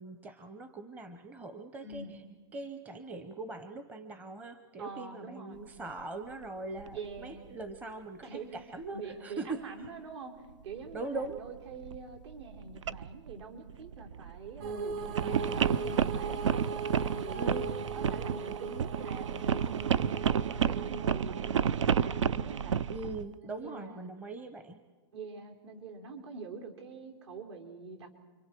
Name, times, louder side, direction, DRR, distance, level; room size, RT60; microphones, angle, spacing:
voice 1, 0.0-2.0 2.5-9.6 10.9-11.4 17.3-17.8 22.9-24.8, right 3 dB, 10° right, 9 dB, 0.8 m, -41 dB
voice 2, 1.8-2.1 4.8-5.7 6.9-7.4 8.2-8.5 8.9-16.7 17.0-22.9 23.4-24.1 25.1-28.1, right 4 dB, 65° right, 1 dB, 4.1 m, -45 dB
sound 1, 6.0-6.1 6.8-7.3 7.7-7.8 9.8-9.9 10.7-23.3, right 8 dB, 90° right, 0.6 m, -31 dB
sound 2, 14.6-23.3, right 4 dB, 40° right, 1.4 m, -40 dB
29.5 x 24.0 x 4.6 m, 1.3 s
hypercardioid pair, 145°, 15 cm